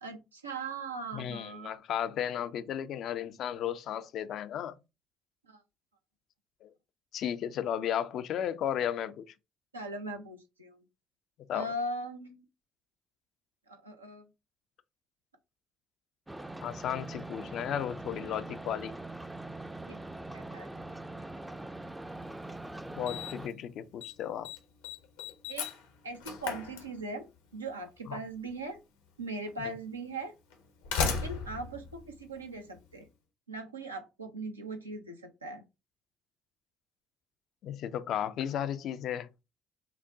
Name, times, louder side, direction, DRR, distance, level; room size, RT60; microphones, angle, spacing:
voice 1, 0.0-1.8 5.5-5.6 9.7-10.8 11.5-12.4 13.7-14.3 19.9-20.0 20.3-20.7 25.5-25.7 26.0-28.8 29.2-30.3 31.0-33.1 33.5-35.6, right 2 dB, 90° right, 0.5 m, -40 dB
voice 2, 1.1-4.8 6.6-6.7 7.1-9.3 11.5-11.7 16.6-19.0 23.0-24.5 28.1-28.2 29.6-29.7 37.6-39.3, left 9 dB, 60° left, 0.4 m, -34 dB
sound 1, 16.3-23.5, right 2 dB, 10° right, 0.4 m, -42 dB
Slam, 22.2-22.3 23.1-23.5 23.8-24.1 24.4-27.4 28.5-28.6 29.5-29.6 30.5-32.9, left 5 dB, 75° left, 0.7 m, -36 dB
5.9 x 2.1 x 2.7 m
figure-of-eight pair, 45°, 0 cm